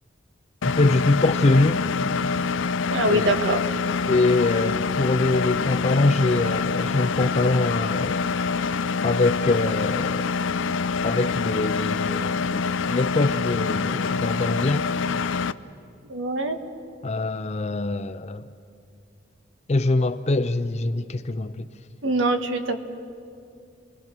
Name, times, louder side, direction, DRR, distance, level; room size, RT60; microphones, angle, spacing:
Engine, 0.6-15.5, left 5 dB, 80° left, 0.5 m, -26 dB
voice 1, 0.6-1.8 3.0-3.3 4.1-8.2 9.0-10.3 11.0-14.9 17.0-18.4 19.7-21.7, left 2 dB, 35° left, 0.5 m, -23 dB
voice 2, 2.9-3.6 16.1-16.6 22.0-22.8, right 1 dB, 80° right, 1.5 m, -23 dB
29.5 x 21.5 x 6.1 m
head